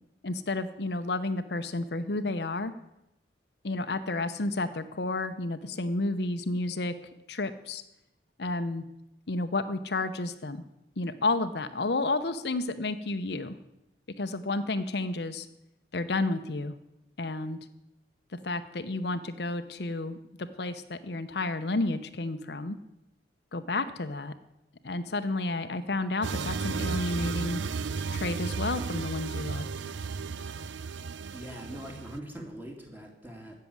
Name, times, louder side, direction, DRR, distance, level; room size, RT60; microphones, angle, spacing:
voice 1, 0.2-2.7 3.6-6.9 7.3-7.8 8.4-8.8 9.3-10.6 11.0-13.6 14.2-15.5 15.9-16.7 17.2-17.6 18.3-22.8 23.5-24.3 24.8-27.6 28.1-29.7, left 2 dB, 60° left, 9 dB, 0.8 m, -31 dB
sound 1, 26.2-32.2, right 5 dB, 90° right, 0.6 m, -34 dB
voice 2, 31.3-33.5, equal, 10° right, 1 dB, 2.5 m, -42 dB
15.5 x 6.7 x 9.5 m, 0.89 s
head